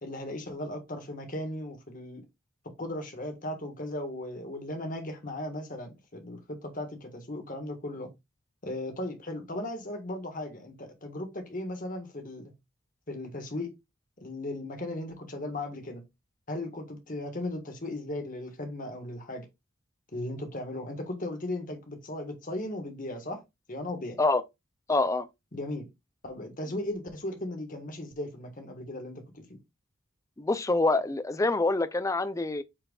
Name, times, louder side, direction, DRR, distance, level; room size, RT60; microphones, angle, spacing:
voice 1, 0.0-2.2 2.8-8.1 8.6-12.5 13.1-13.7 14.2-16.0 16.5-19.4 20.1-23.4 23.7-24.2 25.5-25.9 26.2-29.6, left 1 dB, 40° left, 1.6 m, -37 dB
voice 2, 24.9-25.3 30.4-32.6, left 2 dB, 15° left, 0.4 m, -26 dB
8.7 x 4.5 x 2.4 m
head